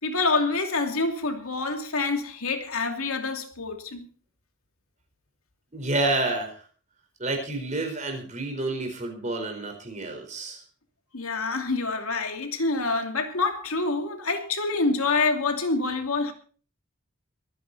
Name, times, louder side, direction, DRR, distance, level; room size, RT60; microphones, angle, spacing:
voice 1, 0.0-4.1 11.1-16.3, left 3 dB, 85° left, 2.8 m, -26 dB
voice 2, 5.7-6.5 7.2-10.6, right 2 dB, 35° right, 4.6 m, -29 dB
23.5 x 10.0 x 4.2 m
head